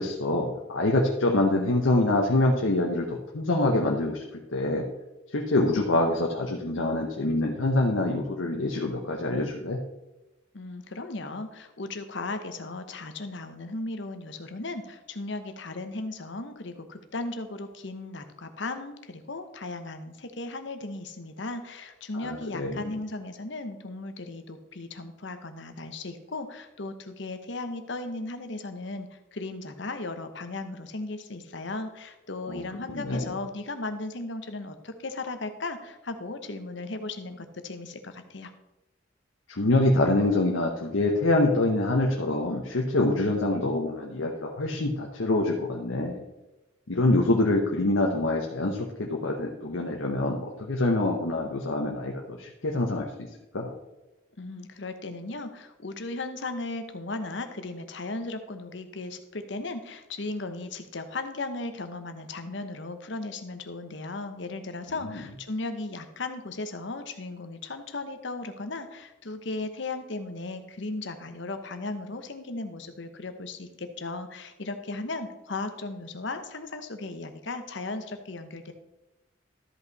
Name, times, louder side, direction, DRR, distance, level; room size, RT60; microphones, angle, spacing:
voice 1, 0.0-4.2 4.5-4.8 5.3-9.8 22.1-22.9 32.5-32.6 32.9-33.3 39.5-46.2 46.9-53.1 53.5-53.7, left 2 dB, 90° left, 0 dB, 1.0 m, -25 dB
voice 2, 10.5-38.5 54.4-78.7, left 2 dB, 65° left, 8 dB, 1.0 m, -36 dB
13.0 x 5.5 x 4.1 m, 1.0 s
head